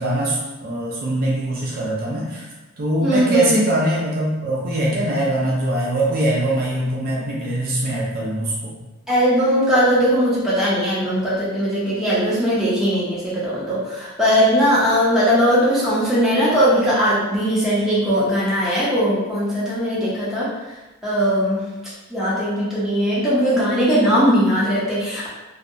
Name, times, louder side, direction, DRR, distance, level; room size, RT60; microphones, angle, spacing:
voice 1, 0.0-2.5 2.8-8.8, right 1 dB, 45° right, -5 dB, 0.4 m, -22 dB
voice 2, 3.0-3.5 9.1-20.5 21.0-21.7 22.1-25.3, equal, ahead, -9 dB, 0.6 m, -19 dB
2.6 x 2.1 x 2.5 m, 1.1 s
head